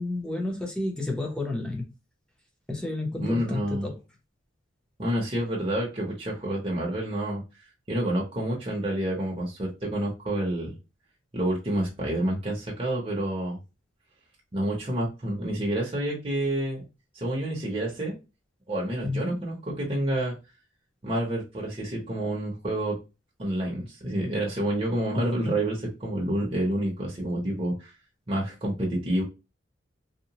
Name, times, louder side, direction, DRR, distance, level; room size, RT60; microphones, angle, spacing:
voice 1, 0.0-1.9 2.7-3.9 19.0-19.4, left 2 dB, 5° left, 0.6 m, -31 dB
voice 2, 3.2-3.9 5.0-7.4 7.9-10.8 11.3-13.6 14.5-16.8 17.1-18.2 18.7-20.4 21.0-23.0 23.4-27.9 28.3-29.2, right 1 dB, 30° right, 0.7 m, -28 dB
2.8 x 2.0 x 2.8 m
head